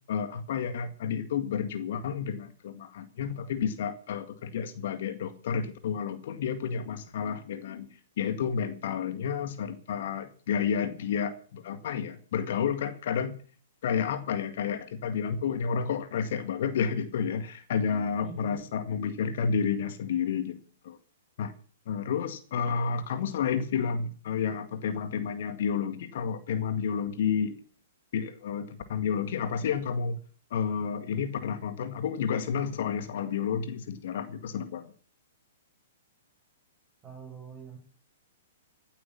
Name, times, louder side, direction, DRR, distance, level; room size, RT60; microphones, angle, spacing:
voice 1, 0.1-7.9 8.2-13.3 13.8-20.6 20.8-21.0 21.4-21.5 21.9-27.6 28.1-30.2 30.5-34.8, left 7 dB, 60° left, 10 dB, 1.9 m, -30 dB
voice 2, 18.2-18.6 37.0-37.8, right 5 dB, 20° right, 1 dB, 6.5 m, -44 dB
16.0 x 8.5 x 7.5 m, 0.42 s
hypercardioid pair, 120°, 0 cm